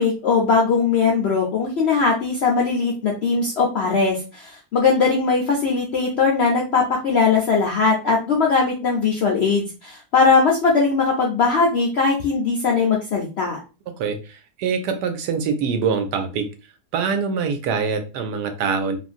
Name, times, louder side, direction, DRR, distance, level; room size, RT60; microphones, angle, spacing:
voice 1, 0.0-13.6, left 4 dB, 70° left, -1 dB, 0.6 m, -20 dB
voice 2, 14.0-16.5 16.9-19.0, right 5 dB, 85° right, 6 dB, 1.2 m, -24 dB
3.0 x 2.5 x 2.4 m, 0.32 s
omnidirectional pair, 1.8 m